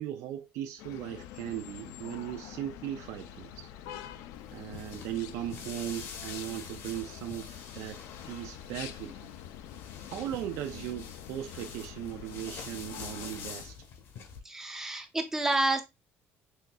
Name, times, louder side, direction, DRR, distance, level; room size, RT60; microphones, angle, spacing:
voice 1, 0.0-3.7 4.5-9.3 10.1-13.8, right 12 dB, 75° right, 0.4 m, -38 dB
sound 1, 0.8-13.7, left 10 dB, 85° left, 0.4 m, -46 dB
sound 2, 4.3-14.4, left 6 dB, 55° left, 0.8 m, -46 dB
voice 2, 14.4-15.8, right 2 dB, 10° right, 0.5 m, -29 dB
6.1 x 2.6 x 2.3 m
cardioid pair, 165°, 5 cm